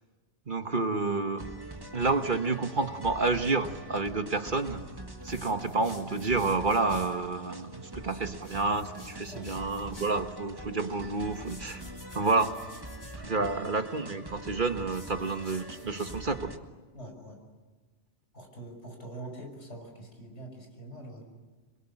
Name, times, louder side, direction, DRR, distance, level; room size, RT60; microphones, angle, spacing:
voice 1, 0.5-1.5 1.9-4.8 5.2-11.8 12.1-12.5 13.1-16.5, right 3 dB, 45° right, 8 dB, 1.4 m, -29 dB
sound 1, 1.4-16.6, right 1 dB, 20° right, 1.6 m, -44 dB
sound 2, 5.2-7.2 8.3-10.2 11.3-13.2 14.8-16.4, equal, 40° left, 3.8 m, -50 dB
voice 2, 16.9-17.4 18.3-21.3, right 1 dB, 75° left, 3 dB, 6.6 m, -44 dB
27.0 x 22.5 x 9.9 m, 1.3 s
omnidirectional pair, 1.2 m